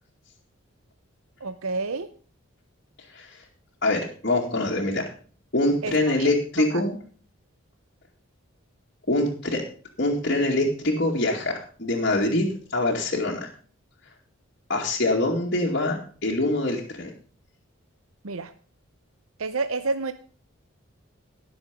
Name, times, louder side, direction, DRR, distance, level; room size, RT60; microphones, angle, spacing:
voice 1, 1.4-2.1 5.8-6.3 6.7-6.8 18.2-18.5 19.4-20.1, right 3 dB, 80° right, 11 dB, 0.8 m, -29 dB
voice 2, 3.8-5.0 5.5-7.0 9.1-9.6 10.0-12.5 12.7-13.5 14.7-17.1, left 2 dB, 50° left, -4 dB, 2.4 m, -24 dB
17.5 x 7.1 x 5.2 m, 0.42 s
head